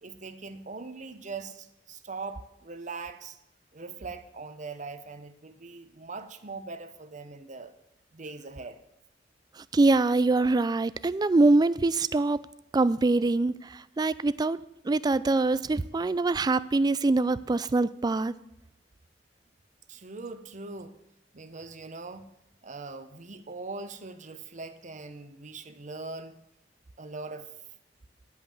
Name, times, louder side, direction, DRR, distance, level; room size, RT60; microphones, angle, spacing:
voice 1, 0.0-3.4 3.7-7.8 8.1-8.8 19.9-21.0 21.3-22.3 22.6-26.4 27.0-27.5, right 3 dB, 45° right, 9 dB, 0.9 m, -41 dB
voice 2, 9.7-12.4 12.7-18.3, right 3 dB, 25° right, 16 dB, 0.3 m, -24 dB
10.5 x 5.6 x 7.7 m, 0.85 s
head